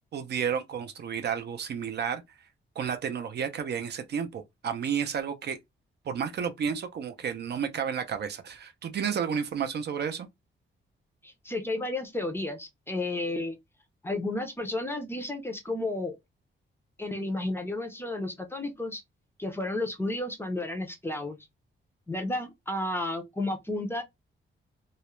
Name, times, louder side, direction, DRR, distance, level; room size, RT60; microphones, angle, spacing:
voice 1, 0.1-2.2 2.8-5.6 6.1-10.3, right 7 dB, 55° right, 0.4 m, -31 dB
voice 2, 11.2-13.6 14.0-16.2 17.0-19.0 19.4-21.4 22.1-24.0, left 2 dB, 10° left, 0.4 m, -32 dB
2.3 x 2.0 x 2.9 m
wide cardioid pair, 155°, 21 cm